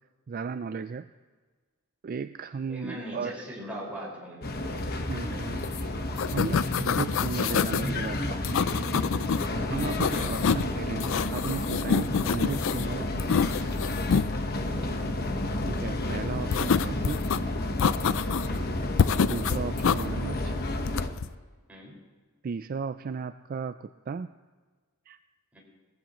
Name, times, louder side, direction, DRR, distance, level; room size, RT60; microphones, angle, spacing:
voice 1, 0.3-1.1 2.0-3.4 4.6-5.9 6.3-8.6 9.6-13.4 15.7-17.3 19.2-20.5 22.4-24.3 25.1-25.2, right 5 dB, 45° right, 11 dB, 0.3 m, -35 dB
voice 2, 2.7-4.5 10.1-10.5 14.7-15.1 18.5-18.7 21.7-21.9 25.5-25.6, equal, 5° right, -5 dB, 5.2 m, -40 dB
sound 1, 4.4-21.1, left 1 dB, 50° left, 1.2 m, -31 dB
sound 2, 5.6-5.8 6.1-7.9 8.4-9.5 9.8-10.7 11.0-12.9 13.2-14.3 16.5-17.4 17.8-18.6 19.0-20.0 20.8-21.3, left 6 dB, 65° left, 0.4 m, -27 dB
19.5 x 15.5 x 3.1 m, 1.4 s
head